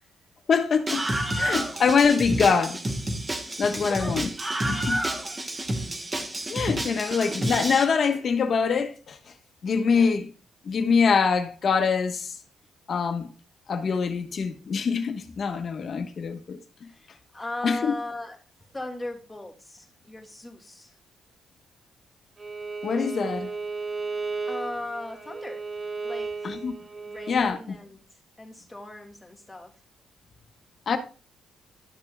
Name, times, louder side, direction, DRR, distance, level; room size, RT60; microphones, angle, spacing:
voice 1, 0.5-1.1 1.4-2.8 3.6-4.3 4.7-5.0 6.5-9.2 9.6-10.3 10.6-12.4 12.9-13.3 13.7-16.6 17.6-17.9 22.8-23.5 26.4-26.7 27.3-27.8 30.9-31.0, left 5 dB, 50° left, 1.3 m, -24 dB
Screaming, 0.9-7.8, right 1 dB, 20° right, 1.5 m, -29 dB
voice 2, 3.7-4.1 5.4-5.6 9.9-10.1 16.9-17.1 17.3-18.4 18.7-20.9 24.5-25.6 26.0-26.6 27.0-28.0 28.4-29.7, left 2 dB, 10° left, 2.4 m, -38 dB
Bowed string instrument, 22.4-27.4, right 4 dB, 40° right, 1.7 m, -34 dB
12.5 x 6.8 x 2.3 m
cardioid pair, 90°, 0 cm